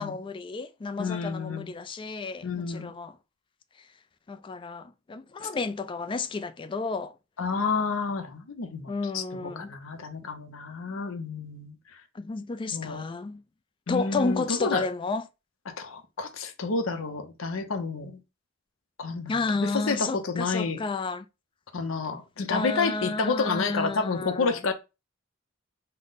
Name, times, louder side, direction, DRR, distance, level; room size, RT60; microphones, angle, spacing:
voice 1, 0.0-3.2 4.3-7.1 8.9-9.7 12.1-13.4 13.9-15.3 19.3-21.2 22.5-24.6, left 3 dB, 25° left, 0.3 m, -31 dB
voice 2, 1.0-1.7 2.4-2.9 5.4-5.5 7.4-11.8 12.7-13.0 13.9-14.8 15.7-18.2 19.0-20.8 21.7-24.7, left 4 dB, 75° left, 0.6 m, -30 dB
5.4 x 2.1 x 3.9 m
head